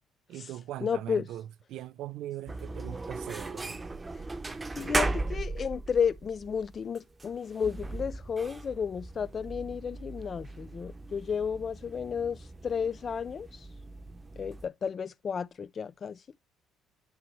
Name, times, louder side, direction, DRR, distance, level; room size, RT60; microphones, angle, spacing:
voice 1, 0.3-3.8, right 13 dB, 75° right, 0.5 m, -40 dB
voice 2, 0.8-1.2 4.8-13.7 14.4-16.2, left 6 dB, 35° left, 0.4 m, -32 dB
sound 1, 2.5-14.7, right 2 dB, 20° right, 0.8 m, -38 dB
10.5 x 4.0 x 3.2 m
cardioid pair, 115°, 0 cm